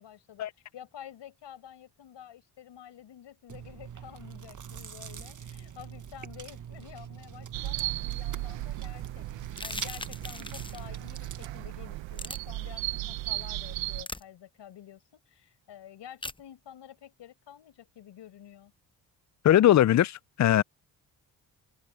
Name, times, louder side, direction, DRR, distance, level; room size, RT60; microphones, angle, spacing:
voice 1, 0.0-18.7, left 10 dB, 65° left, 5.7 m, -49 dB
Chewing mastication, 3.5-11.6, right 8 dB, 40° right, 1.9 m, -44 dB
sound 1, 7.5-14.0, right 18 dB, 80° right, 1.6 m, -36 dB
sound 2, 9.5-10.9 12.1-12.4 14.0-14.2 16.2-16.4, left 2 dB, 10° left, 1.0 m, -39 dB
voice 2, 19.4-20.6, left 12 dB, 40° left, 0.6 m, -20 dB
hypercardioid pair, 50°, 46 cm